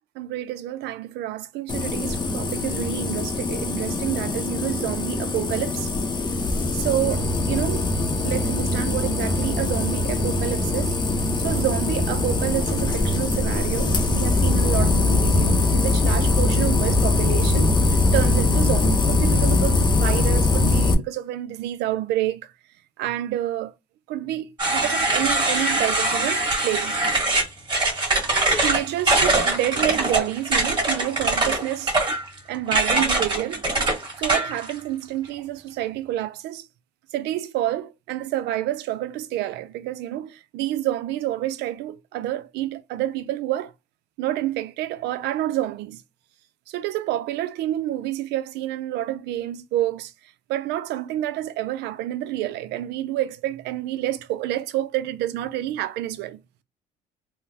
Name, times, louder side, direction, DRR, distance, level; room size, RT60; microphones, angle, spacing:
voice 1, 0.2-5.9 6.7-7.9 8.2-11.0 11.4-22.5 23.0-23.7 24.1-26.9 28.6-31.9 32.5-33.6 34.2-36.7 37.1-43.7 44.2-46.0 46.7-50.1 50.5-56.4, right 13 dB, 85° right, 0.5 m, -28 dB
sound 1, 1.7-20.9, left 2 dB, 25° left, 0.7 m, -22 dB
sound 2, 24.6-34.7, right 2 dB, 25° right, 1.6 m, -22 dB
3.8 x 2.0 x 2.7 m
cardioid pair, 110°, 17 cm